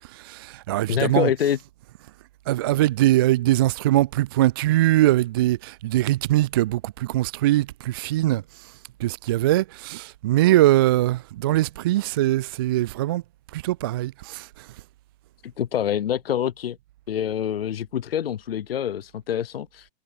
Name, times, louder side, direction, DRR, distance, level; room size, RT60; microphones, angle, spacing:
voice 1, 0.0-1.3 2.5-8.7 9.0-13.2 13.5-14.7, right 15 dB, 25° right, 0.3 m, -22 dB
voice 2, 0.9-1.6 15.6-16.8 17.1-19.9, left 9 dB, 60° left, 0.8 m, -26 dB
figure-of-eight pair, 105°, 33 cm